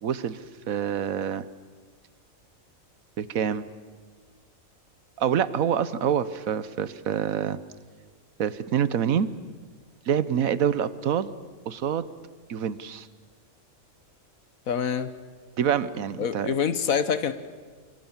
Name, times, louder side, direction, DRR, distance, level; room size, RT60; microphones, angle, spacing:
voice 1, 0.0-0.4 0.7-1.4 3.2-3.6 5.2-7.6 8.4-9.3 10.1-11.3 11.7-12.1 12.5-13.1 15.6-16.5, right 8 dB, 85° right, 15 dB, 1.4 m, -26 dB
voice 2, 14.7-15.1 16.2-17.3, left 7 dB, 85° left, 12 dB, 1.6 m, -26 dB
25.5 x 25.5 x 7.3 m, 1.5 s
omnidirectional pair, 1.4 m